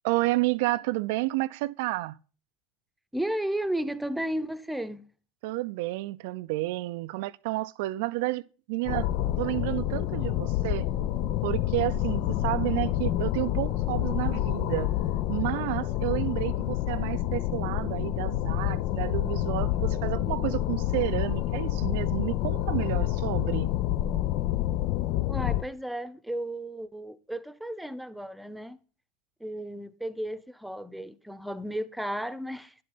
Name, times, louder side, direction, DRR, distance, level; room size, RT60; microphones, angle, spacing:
voice 1, 0.0-2.2 5.4-9.1 9.4-10.9 11.4-14.9 15.3-23.7, right 19 dB, 65° right, 0.4 m, -30 dB
voice 2, 3.1-5.0 25.3-28.8 29.4-32.7, right 1 dB, 5° right, 0.9 m, -33 dB
sound 1, 8.8-25.6, left 13 dB, 55° left, 0.6 m, -28 dB
11.0 x 7.7 x 3.9 m
hypercardioid pair, 85°, 0 cm